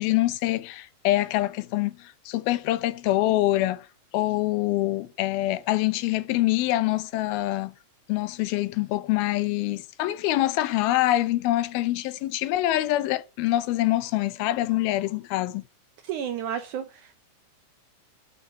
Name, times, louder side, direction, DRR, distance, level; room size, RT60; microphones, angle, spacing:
voice 1, 0.0-3.9 4.1-7.7 8.1-15.6, left 16 dB, 80° left, 2.6 m, -25 dB
voice 2, 16.1-17.3, right 9 dB, 75° right, 1.9 m, -32 dB
12.0 x 4.4 x 8.2 m
omnidirectional pair, 4.3 m